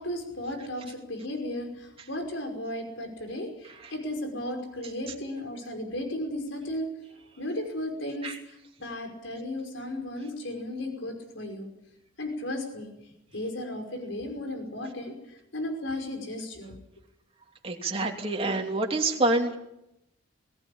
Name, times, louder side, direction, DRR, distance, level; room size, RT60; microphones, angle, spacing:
voice 1, 0.0-6.9 7.4-8.3 8.8-11.7 12.2-12.9 13.3-16.7, left 1 dB, 70° left, 4 dB, 5.5 m, -35 dB
voice 2, 17.6-19.6, right 2 dB, 30° right, 1 dB, 2.9 m, -27 dB
22.0 x 17.5 x 8.7 m, 0.85 s
head